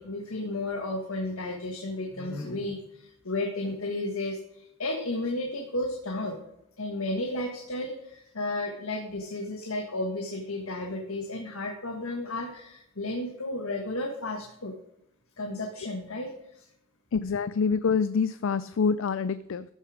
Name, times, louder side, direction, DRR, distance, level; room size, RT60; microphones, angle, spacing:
voice 1, 0.0-6.4 6.8-14.7 15.4-16.6, left 2 dB, 85° left, 3 dB, 1.6 m, -33 dB
voice 2, 17.1-19.6, left 5 dB, 65° left, 15 dB, 0.4 m, -26 dB
14.0 x 7.0 x 4.9 m, 0.81 s
head